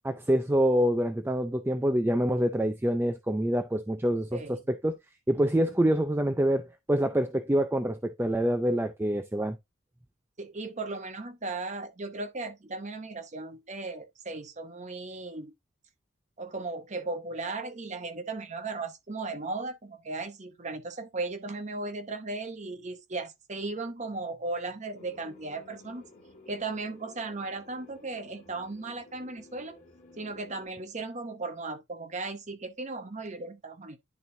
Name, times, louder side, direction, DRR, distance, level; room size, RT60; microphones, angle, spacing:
voice 1, 0.0-5.0 5.3-9.6, equal, 10° right, 0.4 m, -26 dB
voice 2, 4.3-4.6 10.4-15.5 16.4-26.0 26.5-29.8 30.2-34.0, right 3 dB, 35° right, 0.8 m, -36 dB
sound 1, 24.9-30.7, left 2 dB, 35° left, 1.7 m, -54 dB
10.5 x 4.1 x 2.7 m
head